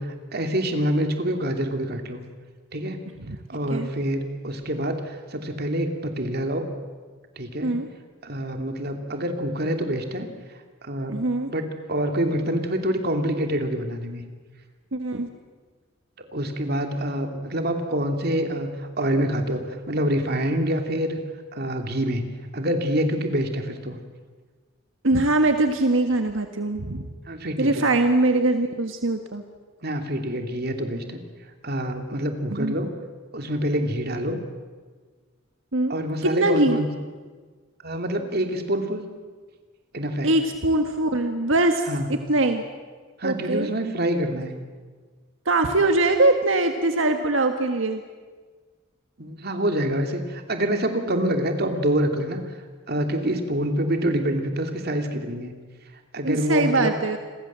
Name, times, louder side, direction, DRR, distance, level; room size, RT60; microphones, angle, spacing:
voice 1, 0.0-2.2 2.7-3.0 3.5-6.7 7.4-7.7 8.2-10.3 10.8-11.2 11.5-14.2 16.2-21.2 21.5-24.0 27.3-27.9 29.8-31.2 31.6-32.9 33.3-34.4 35.9-36.9 37.8-39.1 39.9-40.3 41.9-42.1 43.2-44.5 49.2-52.4 52.9-55.6 56.1-57.0, equal, 55° right, 5 dB, 2.8 m, -26 dB
voice 2, 11.1-11.5 14.9-15.3 25.0-27.1 27.6-29.4 32.5-32.7 35.7-35.9 36.2-36.8 40.2-42.6 43.2-43.7 45.4-48.0 56.2-57.2, right 2 dB, 80° right, 6 dB, 1.6 m, -22 dB
29.5 x 22.5 x 7.5 m, 1.5 s
head